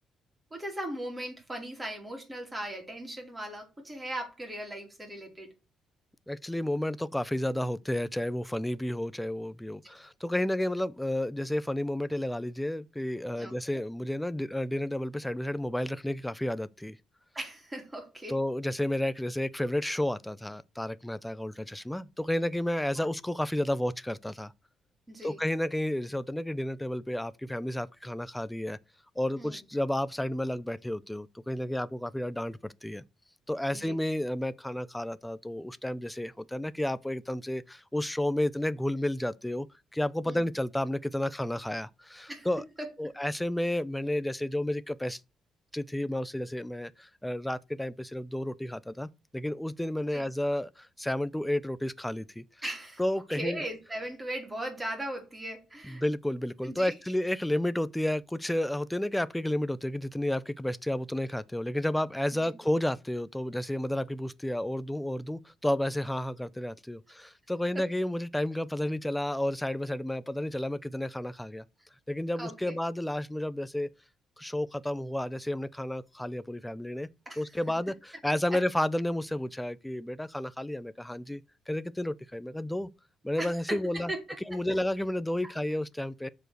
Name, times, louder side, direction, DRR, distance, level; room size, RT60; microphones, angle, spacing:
voice 1, 0.5-5.5 13.4-13.5 17.3-18.4 23.0-23.1 25.1-25.4 29.4-29.6 33.7-34.0 40.2-40.4 42.3-42.5 42.8-42.9 44.0-44.1 50.1-50.3 52.6-53.0 53.3-56.0 56.6-56.9 67.7-67.9 72.4-72.8 77.3-77.4 78.5-78.6 83.4-84.2 84.5-84.7 85.4-85.5, right 1 dB, 15° right, 4.4 m, -38 dB
voice 2, 6.3-17.0 18.3-24.5 25.2-28.8 29.2-33.0 33.5-39.7 39.9-42.6 43.0-45.2 45.7-52.4 53.0-53.6 55.9-71.6 72.1-73.9 74.4-77.1 77.4-81.4 81.7-82.9 83.2-84.1 84.5-86.3, left 1 dB, 5° left, 0.6 m, -31 dB
7.4 x 5.2 x 6.4 m
cardioid pair, 90°, 0 cm